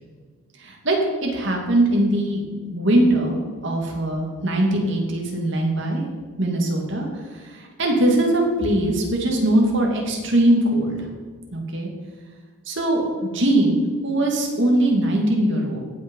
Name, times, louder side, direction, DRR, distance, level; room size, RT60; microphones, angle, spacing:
voice 1, 0.6-3.4 3.6-6.0 6.4-7.1 7.3-11.0 11.5-11.9 12.7-15.8, right 1 dB, 60° right, 0 dB, 2.5 m, -21 dB
16.5 x 6.4 x 5.6 m, 1.5 s
head